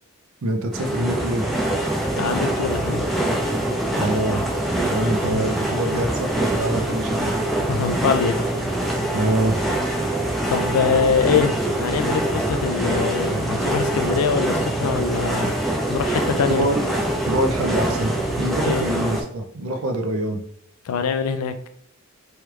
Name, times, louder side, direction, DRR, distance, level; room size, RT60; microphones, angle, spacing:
voice 1, 0.4-1.4 4.0-4.4 4.8-7.3 9.1-9.7 16.5-16.8 17.3-20.4, right 1 dB, 75° right, 4 dB, 0.5 m, -25 dB
sound 1, 0.7-19.2, right 1 dB, ahead, 0.3 m, -24 dB
voice 2, 2.2-3.3 5.2-5.4 7.7-8.4 10.2-15.5 15.9-16.7 18.6-18.8 20.9-21.5, left 6 dB, 85° left, 9 dB, 0.4 m, -24 dB
3.1 x 2.3 x 3.1 m, 0.69 s
head